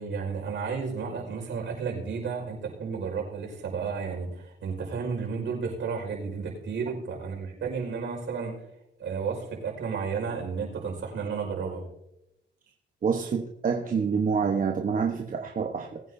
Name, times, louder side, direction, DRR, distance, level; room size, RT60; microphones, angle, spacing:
voice 1, 0.0-8.6 9.0-11.8, right 5 dB, 65° right, 0 dB, 5.2 m, -32 dB
voice 2, 13.0-16.0, right 6 dB, 45° right, 3 dB, 1.1 m, -27 dB
20.5 x 9.5 x 2.7 m, 0.86 s
cardioid pair, 90°, 20 cm